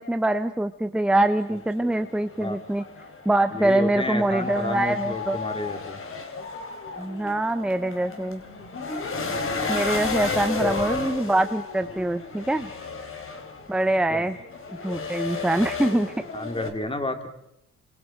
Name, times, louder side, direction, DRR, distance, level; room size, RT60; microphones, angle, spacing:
voice 1, 0.0-2.8 3.2-5.4 7.0-8.4 9.7-12.7 13.7-14.4 14.8-16.1, right 1 dB, 5° right, 10 dB, 0.8 m, -24 dB
sound 1, 1.2-16.7, left 4 dB, 45° left, 3.4 m, -33 dB
voice 2, 3.5-6.0 10.3-10.7 14.1-14.3 16.3-17.3, left 2 dB, 20° left, 7 dB, 2.8 m, -31 dB
28.5 x 26.0 x 4.5 m, 0.79 s
cardioid pair, 90°, 30 cm